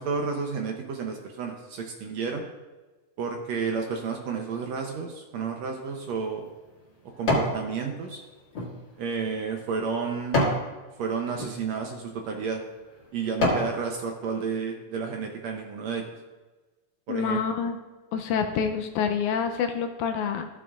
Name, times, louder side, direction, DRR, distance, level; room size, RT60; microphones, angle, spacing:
voice 1, 0.0-2.5 3.2-6.5 7.2-8.2 9.0-10.5 11.0-12.6 13.1-16.1 17.1-17.4, right 5 dB, 70° right, 2 dB, 1.8 m, -31 dB
sound 1, 5.8-7.6 8.1-10.7 11.3-11.5 12.2-12.4 12.9-13.8 14.2-14.3, left 1 dB, 40° left, 2.4 m, -28 dB
voice 2, 17.1-17.8 18.1-20.5, left 6 dB, 80° left, 6 dB, 1.9 m, -27 dB
14.0 x 8.6 x 2.5 m, 1.2 s
omnidirectional pair, 3.7 m